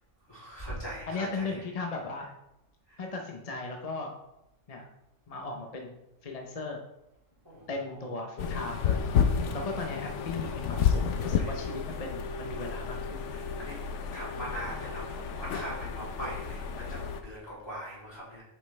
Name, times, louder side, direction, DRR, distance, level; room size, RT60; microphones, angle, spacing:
voice 1, 0.3-1.6 7.4-8.1 11.4-11.7 13.3-13.8 14.1-18.4, right 1 dB, 20° left, -8 dB, 2.9 m, -41 dB
voice 2, 1.0-2.3 3.0-4.1 4.7-4.9 5.3-6.8 7.7-9.1 9.5-13.3, left 3 dB, 35° left, 2 dB, 0.7 m, -37 dB
sound 1, 8.4-17.2, left 7 dB, 70° left, 0.9 m, -31 dB
8.0 x 5.3 x 3.3 m, 0.87 s
omnidirectional pair, 1.3 m